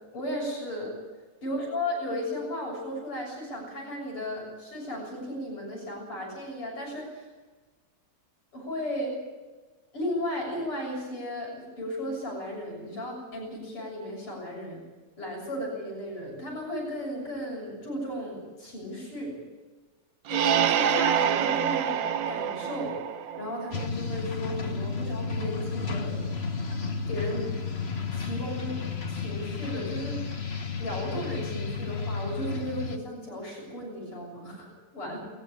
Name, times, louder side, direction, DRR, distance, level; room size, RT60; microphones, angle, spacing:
voice 1, 0.1-0.9 1.4-7.3 8.5-9.2 9.9-14.8 15.2-19.4 20.3-23.0 23.4-26.3 27.1-27.6 28.1-28.8 29.1-30.2 30.8-35.2, left 1 dB, 85° left, -1 dB, 8.1 m, -35 dB
sound 1, 20.3-23.9, right 9 dB, 65° right, 1.5 m, -26 dB
sound 2, 23.7-33.0, left 4 dB, 35° left, 1.3 m, -32 dB
21.5 x 15.0 x 10.0 m, 1.3 s
omnidirectional pair, 2.4 m